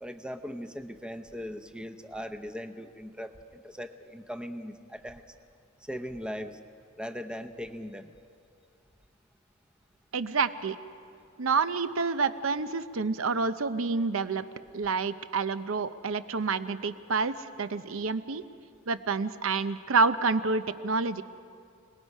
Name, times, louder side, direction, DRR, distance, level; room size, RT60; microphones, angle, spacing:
voice 1, 0.0-5.2 5.8-6.6 7.0-8.1, equal, 5° right, 8 dB, 0.7 m, -39 dB
voice 2, 10.1-10.8 11.4-14.5 14.7-18.4 18.9-21.2, right 4 dB, 75° right, 12 dB, 0.7 m, -28 dB
27.0 x 19.5 x 5.5 m, 2.4 s
head